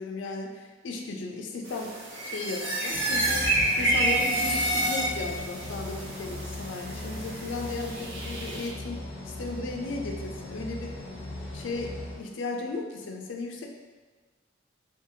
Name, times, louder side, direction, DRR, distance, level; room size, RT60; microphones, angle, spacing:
voice 1, 0.0-1.9 2.2-11.0 11.5-13.7, left 3 dB, 75° left, 2 dB, 0.4 m, -35 dB
sound 1, 1.6-8.7, right 2 dB, 75° right, 0.7 m, -31 dB
sound 2, 2.1-5.5, right 1 dB, 30° right, 0.9 m, -29 dB
sound 3, 2.9-12.2, left 1 dB, 25° left, 0.6 m, -39 dB
2.8 x 2.3 x 2.7 m, 1.4 s
head